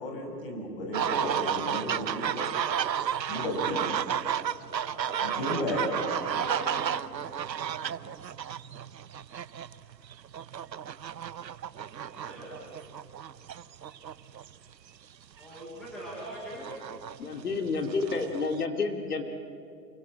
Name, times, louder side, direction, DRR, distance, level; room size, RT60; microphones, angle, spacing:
voice 1, 0.0-2.5 3.2-3.9 5.2-5.9, left 1 dB, 35° left, 2 dB, 5.7 m, -33 dB
sound 1, 0.9-14.7 15.4-15.6 15.9-18.6, right 9 dB, 85° right, 1.0 m, -33 dB
voice 2, 4.6-6.9 7.8-7.9 12.1-12.6 15.4-16.7, right 1 dB, ahead, -8 dB, 1.0 m, -40 dB
voice 3, 17.2-19.2, left 4 dB, 65° left, 5 dB, 2.9 m, -30 dB
28.0 x 25.0 x 7.5 m, 2.5 s
hypercardioid pair, 170°, 49 cm